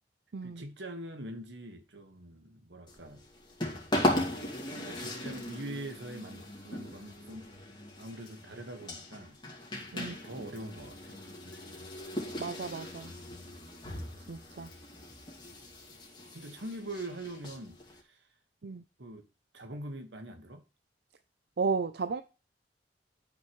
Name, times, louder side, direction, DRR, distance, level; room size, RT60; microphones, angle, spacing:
voice 1, 0.4-3.2 4.0-7.5 8.0-9.4 9.9-11.9 16.3-18.3 19.0-19.3 19.5-20.6, right 1 dB, 80° right, 1.6 m, -44 dB
sound 1, 2.9-18.0, left 1 dB, 25° left, 2.5 m, -38 dB
voice 2, 12.4-13.1 14.3-14.7 18.6-18.8 21.6-22.2, right 5 dB, 60° right, 0.5 m, -33 dB
12.5 x 5.9 x 3.2 m
head